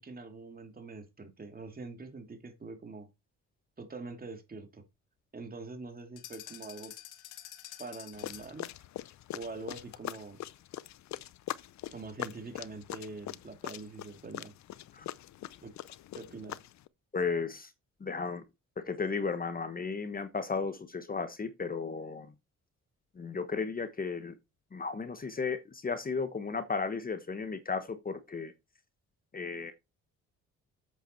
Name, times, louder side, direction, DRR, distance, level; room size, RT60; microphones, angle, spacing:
voice 1, 0.0-3.1 3.8-4.8 5.3-6.9 7.8-8.7 9.3-10.4 11.9-14.5 15.6-15.7 16.2-16.6, right 3 dB, 30° right, 2.6 m, -44 dB
sound 1, 6.2-8.6, left 13 dB, 85° left, 1.2 m, -48 dB
sound 2, 8.1-16.9, left 13 dB, 65° left, 0.6 m, -42 dB
voice 2, 17.1-17.7 18.0-18.4 18.8-22.3 23.2-24.4 24.7-28.5 29.3-29.7, left 4 dB, 30° left, 1.1 m, -34 dB
8.1 x 8.0 x 4.5 m
cardioid pair, 90°, 30 cm